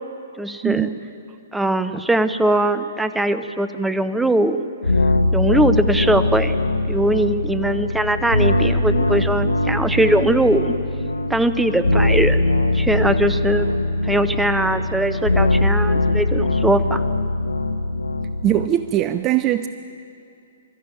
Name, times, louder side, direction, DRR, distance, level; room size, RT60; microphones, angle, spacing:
voice 1, 0.4-0.9 1.5-4.7 5.3-6.6 6.9-10.7 11.3-13.7 14.0-17.0, right 1 dB, 5° right, 11 dB, 0.8 m, -20 dB
sound 1, 4.8-18.7, left 2 dB, 90° left, 1.0 m, -21 dB
voice 2, 18.4-19.7, right 12 dB, 25° right, 12 dB, 0.5 m, -20 dB
24.0 x 13.0 x 9.2 m, 2.6 s
figure-of-eight pair, 120°, 0 cm